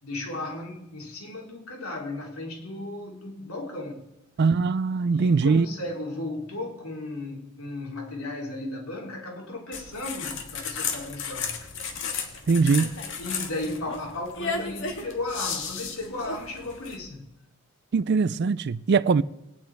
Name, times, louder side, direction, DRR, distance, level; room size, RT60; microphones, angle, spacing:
voice 1, 0.0-4.1 5.1-11.6 13.2-17.3, left 2 dB, 80° left, 3.2 m, -35 dB
voice 2, 4.4-5.7 12.5-13.0 17.9-19.2, right 4 dB, 50° right, 0.4 m, -21 dB
sound 1, 9.7-17.0, left 5 dB, 55° left, 1.7 m, -34 dB
21.5 x 9.0 x 4.7 m
head